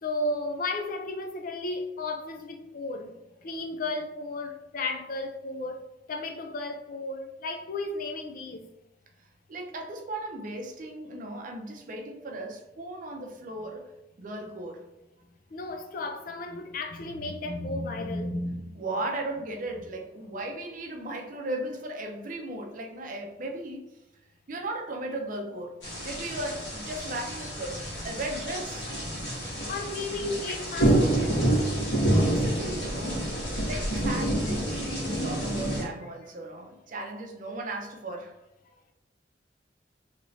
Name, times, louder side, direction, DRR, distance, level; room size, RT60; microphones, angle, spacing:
voice 1, 0.0-3.2 3.4-5.8 6.1-8.7 15.5-18.8 29.7-31.8, left 2 dB, 50° left, 0.4 m, -34 dB
voice 2, 9.5-13.9 14.2-14.9 18.7-23.9 24.5-28.9 32.0-38.3, right 2 dB, 45° right, 0.5 m, -36 dB
sound 1, 25.8-35.8, right 1 dB, 75° left, 1.3 m, -28 dB
3.1 x 2.9 x 2.6 m
head